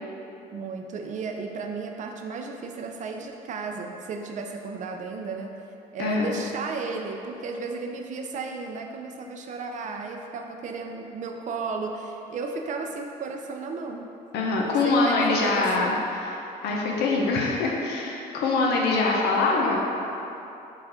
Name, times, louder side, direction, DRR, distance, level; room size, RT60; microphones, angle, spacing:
voice 1, 0.5-5.6 5.9-14.1 14.6-15.9, right 4 dB, 45° right, 3 dB, 0.4 m, -34 dB
voice 2, 6.0-6.3 14.3-19.8, left 3 dB, 80° left, -2 dB, 0.6 m, -24 dB
4.8 x 2.4 x 4.2 m, 2.8 s
cardioid pair, 110°, 17 cm